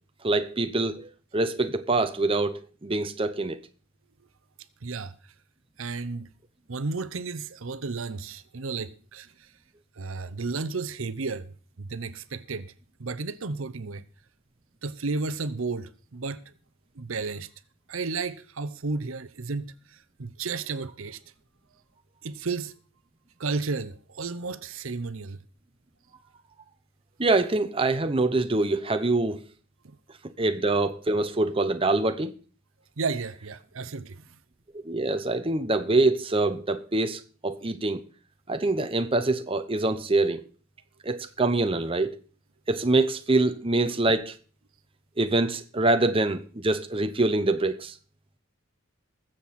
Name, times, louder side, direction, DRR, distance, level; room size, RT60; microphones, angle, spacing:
voice 1, 0.2-3.6 27.2-29.4 30.4-32.3 34.7-38.0 38.5-40.4 41.0-42.2 42.7-44.3 45.2-47.9, right 2 dB, 25° right, 0.8 m, -25 dB
voice 2, 4.8-5.3 5.8-6.3 6.7-9.5 10.0-12.7 13.0-14.0 14.8-16.5 16.9-17.5 17.9-21.2 22.2-22.7 23.4-25.4 29.8-30.0 33.0-34.4, right 4 dB, 70° right, 0.8 m, -33 dB
20.5 x 7.7 x 4.2 m
head